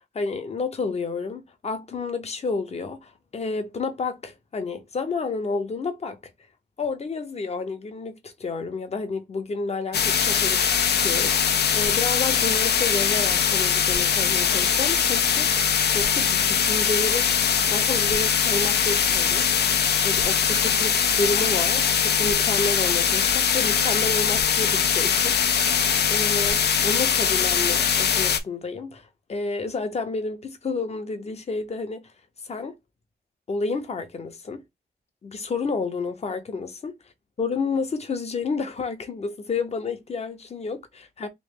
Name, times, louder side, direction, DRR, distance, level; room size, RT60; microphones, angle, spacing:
voice 1, 0.1-6.2 6.8-15.5 15.9-32.1 32.5-32.7 33.5-34.6 35.2-37.0 37.4-41.3, left 4 dB, 40° left, 0.7 m, -30 dB
sound 1, 9.9-28.4, left 7 dB, 85° left, 0.6 m, -22 dB
3.1 x 3.0 x 3.6 m
wide cardioid pair, 175°, 17 cm